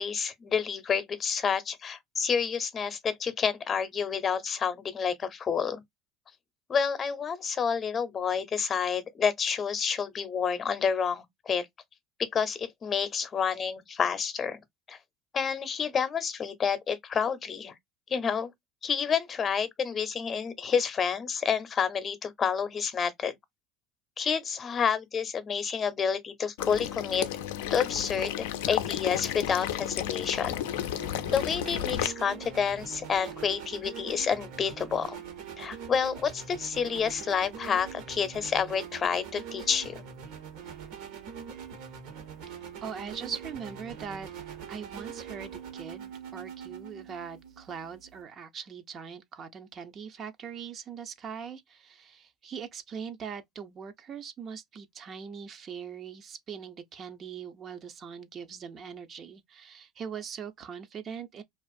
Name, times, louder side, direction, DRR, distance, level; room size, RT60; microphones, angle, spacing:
voice 1, 0.0-5.8 6.7-11.7 12.2-14.6 14.9-15.0 15.3-17.7 18.1-18.5 18.8-23.4 24.2-27.3 27.7-30.6 31.3-35.2 35.6-40.1, left 6 dB, 35° left, 0.6 m, -29 dB
Water / Liquid, 26.6-32.1, left 11 dB, 85° left, 0.3 m, -32 dB
sound 1, 30.5-48.2, right 7 dB, 75° right, 1.1 m, -43 dB
voice 2, 42.8-44.3 44.7-61.4, right 7 dB, 45° right, 0.5 m, -41 dB
2.4 x 2.4 x 2.4 m
supercardioid pair, 90°, 0 cm